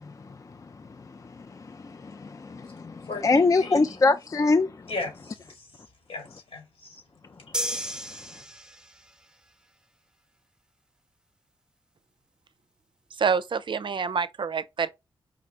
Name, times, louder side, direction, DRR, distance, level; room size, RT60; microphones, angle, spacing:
voice 1, 1.5-4.7, left 3 dB, 35° left, 0.4 m, -24 dB
voice 2, 3.1-4.0 4.9-5.7 6.1-7.0, left 3 dB, 75° left, 2.0 m, -37 dB
sound 1, 7.5-9.1, equal, 10° right, 0.7 m, -33 dB
voice 3, 13.2-14.9, right 6 dB, 55° right, 0.5 m, -27 dB
4.7 x 2.4 x 3.2 m
supercardioid pair, 40°, 10 cm